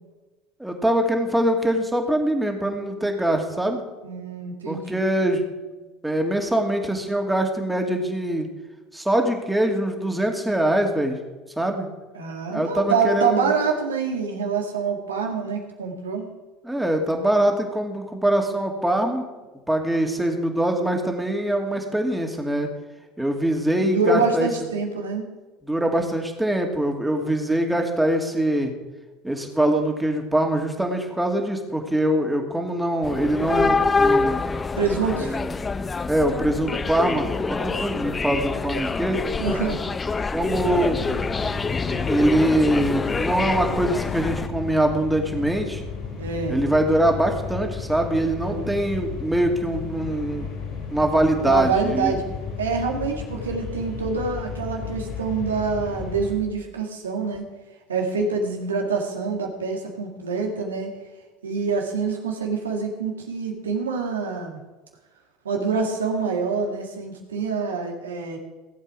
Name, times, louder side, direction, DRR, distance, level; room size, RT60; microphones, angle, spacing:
voice 1, 0.6-3.8 4.6-5.5 6.0-8.5 8.9-11.2 11.6-11.9 12.5-13.5 16.6-19.2 19.7-22.7 23.2-24.5 25.6-28.7 29.2-34.4 35.2-35.5 36.1-39.3 40.3-41.0 42.1-45.8 46.5-50.5 50.9-52.2, right 1 dB, 5° right, 3 dB, 2.5 m, -23 dB
voice 2, 4.0-5.0 12.1-16.3 23.8-25.3 34.8-35.4 39.4-39.9 46.2-46.6 48.4-48.8 51.4-52.2 52.6-57.4 57.9-60.9 61.4-64.6 65.4-68.4, right 5 dB, 90° right, 1 dB, 2.1 m, -26 dB
sound 1, 33.0-44.5, left 4 dB, 25° left, 0.6 m, -26 dB
sound 2, 40.5-56.3, left 5 dB, 55° left, 5.4 m, -34 dB
18.5 x 8.0 x 4.9 m, 1.2 s
hypercardioid pair, 70°, 0 cm